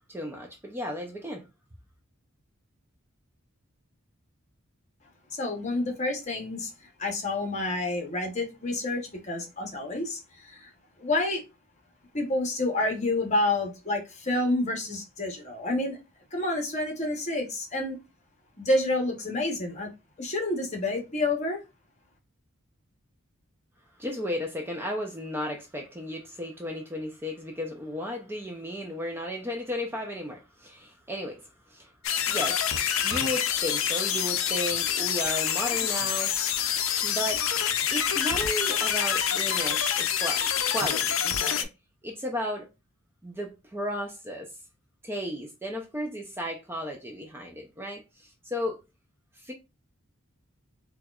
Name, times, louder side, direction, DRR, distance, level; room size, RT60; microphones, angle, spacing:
voice 1, 0.1-1.4 24.0-31.9 32.3-32.7 33.0-36.3 37.0-37.5 37.9-41.7 42.0-42.7 43.2-44.5 45.0-48.8 49.3-49.5, equal, 10° right, 0.4 m, -34 dB
voice 2, 5.3-10.7 11.0-11.4 12.1-16.0 16.3-18.0 18.6-19.9 20.2-21.6, left 2 dB, 35° left, 0.9 m, -29 dB
sound 1, 32.0-41.6, left 9 dB, 65° left, 0.5 m, -27 dB
4.3 x 2.3 x 2.3 m
head